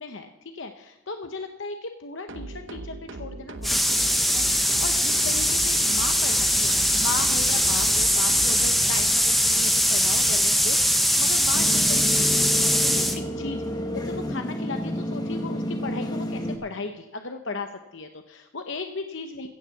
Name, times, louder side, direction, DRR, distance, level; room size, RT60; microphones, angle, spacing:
voice 1, 0.0-19.5, left 3 dB, 55° left, 6 dB, 0.8 m, -36 dB
sound 1, 2.3-8.7, right 2 dB, 55° right, 0.8 m, -38 dB
sound 2, 3.6-13.2, equal, ahead, 0.7 m, -21 dB
sound 3, 11.5-16.6, left 1 dB, 20° left, 1.2 m, -30 dB
16.0 x 7.3 x 7.0 m, 1.2 s
head